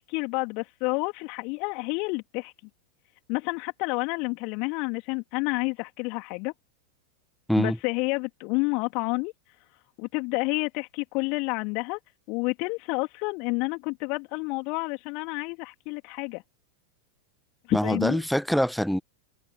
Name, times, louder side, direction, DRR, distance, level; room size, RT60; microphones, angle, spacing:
voice 1, 0.0-2.5 3.3-6.5 7.6-9.3 10.0-12.0 12.3-16.4 17.7-18.2, left 31 dB, 45° left, 3.0 m, -29 dB
voice 2, 17.7-19.0, equal, ahead, 1.5 m, -24 dB
figure-of-eight pair, 90°, 0 cm